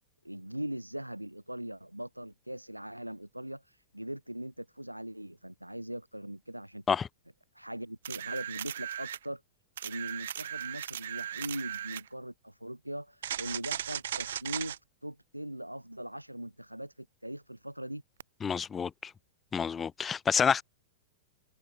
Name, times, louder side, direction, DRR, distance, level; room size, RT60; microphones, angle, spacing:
voice 1, 0.2-6.8 7.5-9.4 9.8-14.8 15.0-18.0, right 1 dB, 90° right, 0.7 m, -40 dB
sound 1, 8.1-9.3 9.8-12.1 13.2-14.8 18.2-18.3, right 10 dB, 60° right, 0.8 m, -37 dB
voice 2, 18.4-19.1 19.5-20.6, left 6 dB, 15° left, 0.5 m, -28 dB
figure-of-eight pair, 100°, 0 cm